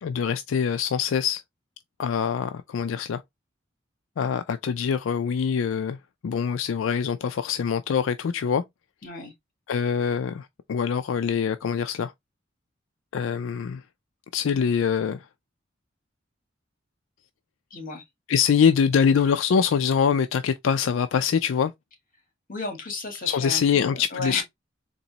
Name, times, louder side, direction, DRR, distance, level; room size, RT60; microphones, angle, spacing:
voice 1, 0.0-1.4 2.0-3.2 4.2-6.0 6.2-8.6 9.7-12.1 13.1-13.8 14.3-15.3 18.3-21.7 23.2-24.4, left 7 dB, 80° left, 0.4 m, -24 dB
voice 2, 9.0-9.3 17.7-18.0 22.5-24.4, left 3 dB, 45° left, 1.7 m, -34 dB
4.1 x 2.9 x 2.8 m
head